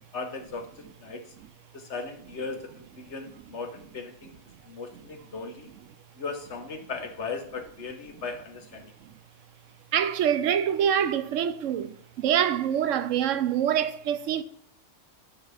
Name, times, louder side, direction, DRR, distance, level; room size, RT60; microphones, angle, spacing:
voice 1, 0.1-1.2 1.7-4.4 4.6-5.7 6.2-8.9, left 4 dB, 65° left, 1.4 m, -37 dB
voice 2, 9.9-11.9 12.2-14.4, right 9 dB, 85° right, 1.0 m, -25 dB
7.9 x 4.7 x 5.6 m
omnidirectional pair, 1.3 m